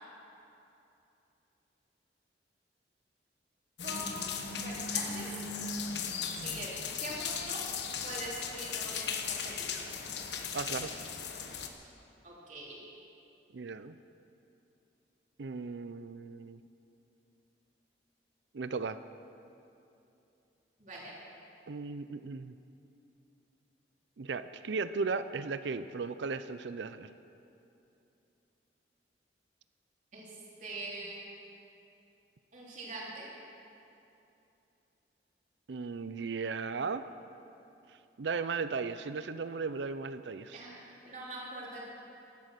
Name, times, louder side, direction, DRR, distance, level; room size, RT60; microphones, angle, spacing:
sound 1, 3.8-11.7, left 6 dB, 75° left, 1.2 m, -37 dB
voice 1, 3.8-5.4 6.4-7.6 8.0-9.9 12.2-12.8 20.8-21.1 30.1-31.3 32.5-33.3 40.5-41.9, right 1 dB, 45° right, -5 dB, 3.8 m, -43 dB
voice 2, 10.5-10.9 13.5-13.9 15.4-16.6 18.5-19.0 21.7-22.5 24.2-27.1 35.7-37.0 38.2-40.6, right 4 dB, 75° right, 12 dB, 0.5 m, -36 dB
15.5 x 12.0 x 6.7 m, 2.8 s
head